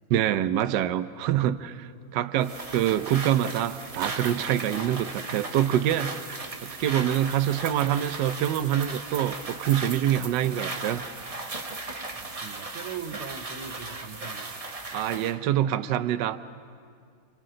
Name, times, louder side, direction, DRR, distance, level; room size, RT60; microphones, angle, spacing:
voice 1, 0.1-6.1 6.6-11.0 14.9-16.4, right 11 dB, 65° right, 11 dB, 1.2 m, -25 dB
sound 1, 2.4-15.4, right 3 dB, 40° right, 0.5 m, -37 dB
voice 2, 12.1-14.6, right 7 dB, 80° right, 8 dB, 2.0 m, -40 dB
29.5 x 28.5 x 3.9 m, 2.3 s
omnidirectional pair, 2.4 m